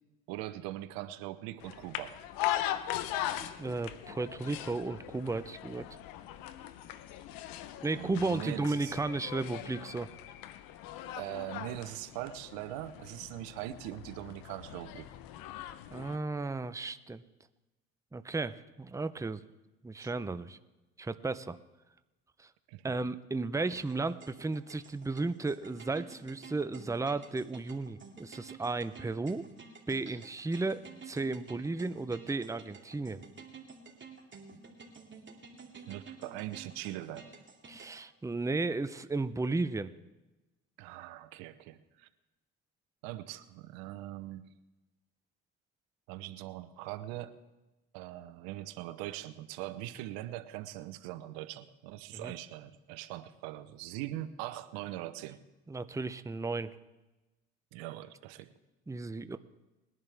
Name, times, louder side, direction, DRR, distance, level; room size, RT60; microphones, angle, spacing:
voice 1, 0.3-2.2 7.9-9.0 11.2-15.1 20.0-20.1 22.7-22.8 34.5-34.6 35.9-37.3 40.8-42.1 43.0-44.4 46.1-47.4 47.9-55.4 57.7-58.5, right 14 dB, 85° right, 13 dB, 0.8 m, -41 dB
sound 1, 1.6-16.2, left 12 dB, 80° left, 0.9 m, -40 dB
voice 2, 3.4-5.8 7.8-10.1 15.9-17.2 18.1-19.4 19.8-20.6 21.0-21.6 22.4-22.5 22.8-29.4 29.9-33.2 37.7-39.9 52.1-52.3 55.7-56.8 58.9-59.4, right 3 dB, 10° right, 12 dB, 0.7 m, -34 dB
sound 2, 23.7-38.0, right 4 dB, 35° right, 2.5 m, -51 dB
21.0 x 11.0 x 3.5 m, 1.1 s
supercardioid pair, 70°, 35 cm